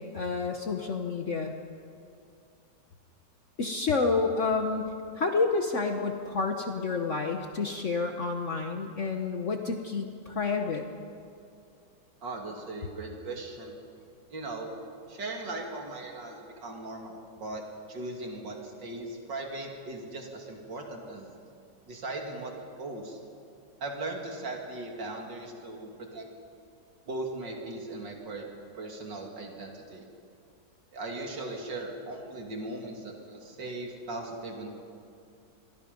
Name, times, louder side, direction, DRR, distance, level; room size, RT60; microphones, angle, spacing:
voice 1, 0.0-1.5 3.6-10.9, left 4 dB, 50° left, 4 dB, 1.3 m, -29 dB
voice 2, 12.2-13.8 14.3-14.7 15.1-17.6 17.9-21.3 21.9-23.2 23.8-26.3 27.1-28.5 28.7-30.0 30.9-34.8, right 2 dB, 85° right, 1 dB, 3.3 m, -38 dB
27.0 x 22.0 x 5.3 m, 2.4 s
omnidirectional pair, 1.9 m